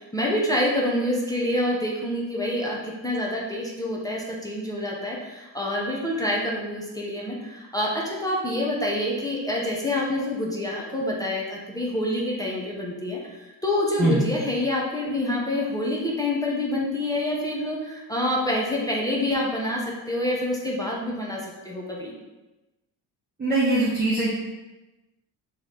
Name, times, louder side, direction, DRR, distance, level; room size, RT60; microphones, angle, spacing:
voice 1, 0.1-19.8 20.1-21.4 21.6-22.1, left 1 dB, 10° left, -4 dB, 0.8 m, -27 dB
voice 2, 23.4-24.3, right 2 dB, 20° right, -7 dB, 1.0 m, -21 dB
3.2 x 3.1 x 4.0 m, 1.1 s
supercardioid pair, 75°, 47 cm